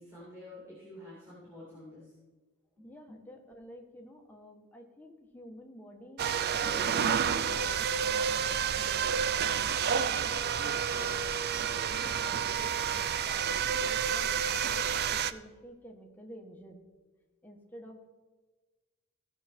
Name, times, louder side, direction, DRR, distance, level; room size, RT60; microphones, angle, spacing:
voice 1, 0.0-2.1 2.8-3.2, left 1 dB, 15° right, -8 dB, 3.0 m, -49 dB
voice 2, 2.8-6.2 6.5-16.8 17.4-18.1, equal, 10° left, 1 dB, 1.3 m, -51 dB
sound 1, 6.2-15.3, right 7 dB, 50° right, 0.4 m, -29 dB
16.0 x 5.9 x 4.4 m, 1.3 s
head